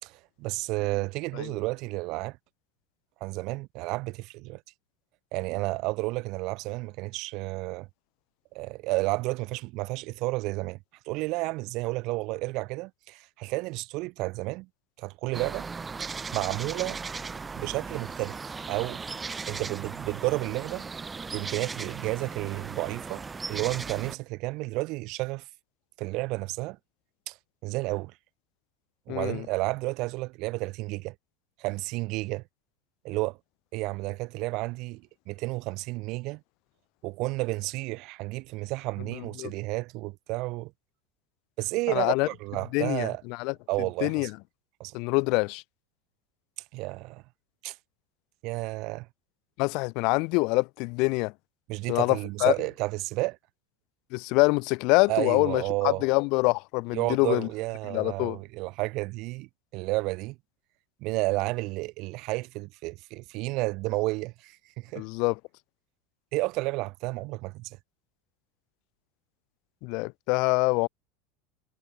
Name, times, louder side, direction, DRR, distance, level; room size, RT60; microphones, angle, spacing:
voice 1, 0.0-2.4 3.2-4.6 5.3-7.9 8.5-10.8 11.1-14.7 15.0-15.7 16.0-17.0 17.5-18.4 18.7-19.0 19.5-20.9 21.3-23.2 23.5-25.5 26.0-26.8 27.3-27.4 27.6-28.1 29.1-31.1 31.6-32.4 33.0-33.4 33.7-36.4 37.0-40.7 41.6-43.2 43.7-44.3 44.8-44.9 46.7-47.2 47.6-47.8 48.4-49.1 51.7-53.4 55.1-56.0 56.9-60.4 61.0-65.0 66.3-67.8, right 22 dB, 60° right, 2.9 m, -31 dB
sound 1, 15.3-24.2, right 4 dB, 20° right, 4.2 m, -37 dB
voice 2, 29.1-29.4 39.4-39.5 41.9-42.3 42.7-43.5 44.0-44.3 44.9-45.6 49.6-51.3 51.9-52.5 54.1-57.5 57.9-58.4 64.9-65.4 69.8-70.9, left 28 dB, 60° left, 1.2 m, -25 dB
hypercardioid pair, 90°, 0 cm